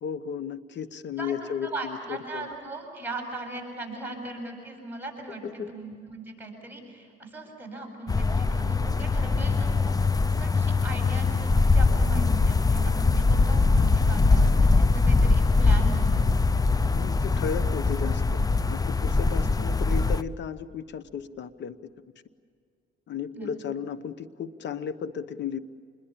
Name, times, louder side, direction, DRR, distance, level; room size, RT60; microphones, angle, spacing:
voice 1, 0.0-2.5 5.4-5.7 16.9-18.4 18.7-21.8 23.1-25.6, left 7 dB, 65° left, 13 dB, 1.0 m, -34 dB
voice 2, 1.2-5.4 5.7-16.3 23.3-23.5, right 2 dB, 10° right, 1 dB, 7.9 m, -39 dB
sound 1, 8.1-20.2, left 3 dB, 20° left, 0.6 m, -22 dB
28.0 x 21.5 x 8.6 m, 2.2 s
cardioid pair, 90°, 20 cm